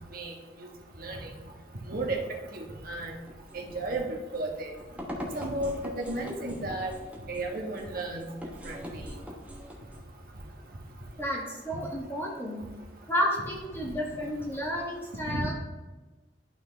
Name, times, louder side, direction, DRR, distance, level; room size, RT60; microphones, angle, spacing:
voice 1, 1.8-2.2 2.5-3.1 3.5-4.7 5.3-6.9 7.3-8.3 8.6-9.1 15.3-15.5, right 2 dB, 55° right, 1 dB, 1.2 m, -33 dB
sound 1, 3.3-10.0, equal, 10° right, 1.0 m, -43 dB
voice 2, 11.2-12.6 13.1-15.5, equal, 15° left, -4 dB, 1.6 m, -31 dB
11.5 x 3.9 x 3.4 m, 1.2 s
head